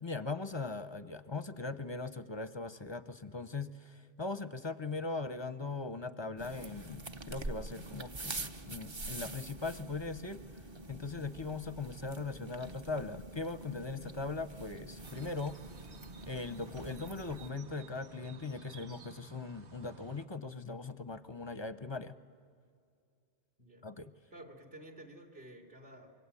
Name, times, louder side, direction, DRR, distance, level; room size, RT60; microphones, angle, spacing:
voice 1, 0.0-10.4 10.9-15.5 16.3-22.2 23.8-24.1, left 3 dB, 30° left, 12 dB, 0.6 m, -40 dB
sound 1, 6.4-17.5, right 2 dB, 30° right, 0.7 m, -45 dB
sound 2, 15.0-20.3, right 7 dB, 75° right, 1.4 m, -54 dB
voice 2, 23.6-24.0 24.3-26.1, right 1 dB, 50° right, 3 dB, 3.0 m, -52 dB
25.5 x 23.5 x 8.4 m, 2.4 s
omnidirectional pair, 1.2 m